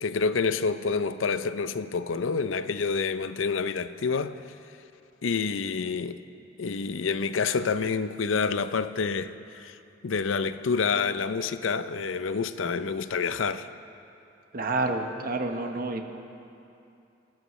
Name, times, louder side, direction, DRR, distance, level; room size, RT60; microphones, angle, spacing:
voice 1, 0.0-4.3 5.2-6.2 6.6-9.8 10.0-13.7, left 5 dB, 85° left, 0.5 m, -28 dB
voice 2, 14.5-16.0, right 3 dB, 50° right, 1.1 m, -29 dB
26.0 x 14.0 x 3.2 m
head